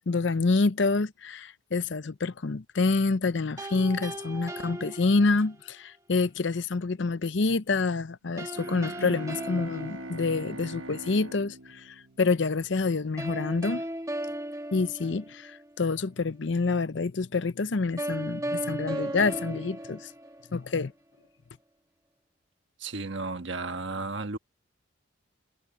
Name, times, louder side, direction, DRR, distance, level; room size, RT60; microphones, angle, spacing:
voice 1, 0.1-13.8 14.7-20.1 20.5-20.9, left 3 dB, 65° left, 0.6 m, -27 dB
sound 1, 3.6-5.7 8.4-10.8 13.2-15.7 18.0-20.8, right 1 dB, 15° right, 1.7 m, -36 dB
Bowed string instrument, 8.5-12.8, right 1 dB, 80° right, 1.3 m, -42 dB
voice 2, 22.8-24.4, right 3 dB, 65° right, 1.4 m, -33 dB
head